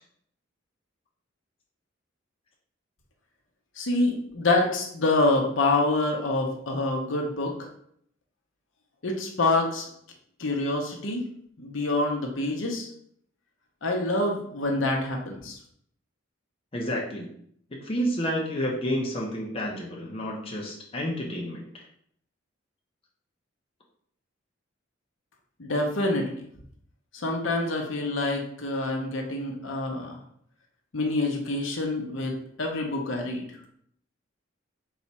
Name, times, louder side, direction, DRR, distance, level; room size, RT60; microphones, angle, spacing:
voice 1, 3.8-7.6 9.0-9.9 10.4-11.2 11.6-12.9 13.8-15.6 25.6-26.4 27.1-30.2 30.9-33.4, left 2 dB, 75° left, 1 dB, 0.8 m, -26 dB
voice 2, 16.7-17.3 17.7-21.6, equal, 30° left, -3 dB, 0.6 m, -30 dB
4.1 x 2.4 x 4.1 m, 0.66 s
head